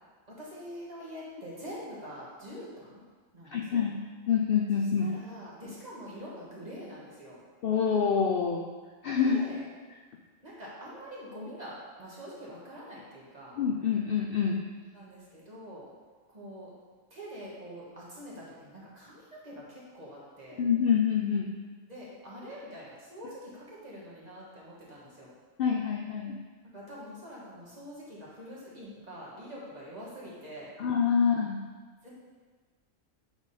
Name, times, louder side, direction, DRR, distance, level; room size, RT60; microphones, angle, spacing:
voice 1, 0.3-3.0 3.3-3.9 5.0-7.4 9.1-9.6 10.4-13.6 14.9-15.9 16.3-16.7 17.1-20.6 21.9-25.3 26.7-30.7 32.0-32.1, equal, 30° right, -7 dB, 1.6 m, -45 dB
voice 2, 3.5-4.0 4.3-5.1 7.6-8.6 9.0-9.4 13.6-14.6 20.6-21.5 25.6-26.4 30.8-31.6, left 7 dB, 75° left, 0 dB, 0.5 m, -26 dB
8.0 x 3.5 x 4.1 m, 1.4 s
omnidirectional pair, 1.5 m